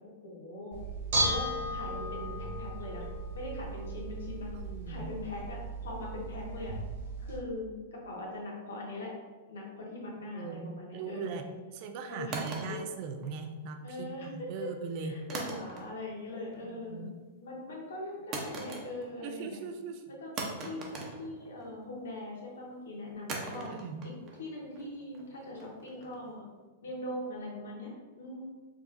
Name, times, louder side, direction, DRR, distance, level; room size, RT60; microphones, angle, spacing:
voice 1, 0.2-0.8 1.2-3.0 3.3-4.5 4.9-6.7 7.3-9.1 9.5-11.5 12.0-12.4 12.7-12.8 13.8-14.7 15.0-17.0 17.4-19.6 20.1-20.3 20.6-23.7 24.0-26.4 26.8-28.4, left 1 dB, 90° left, -3 dB, 1.2 m, -41 dB
Bell / Dishes pots and pans, 0.7-7.4, right 1 dB, 75° right, 1.4 m, -35 dB
voice 2, 4.5-5.1 10.3-11.5 11.7-15.2 16.6-17.1 19.2-20.1 23.5-24.0, right 5 dB, 50° right, 6 dB, 0.4 m, -40 dB
sound 1, 12.3-13.7 15.3-16.1 16.4-16.9 18.3-19.3 19.5-19.6 20.4-21.9 23.3-26.3, right 3 dB, 35° right, 0.8 m, -41 dB
4.8 x 2.6 x 2.5 m, 1.3 s
hypercardioid pair, 130°, 0 cm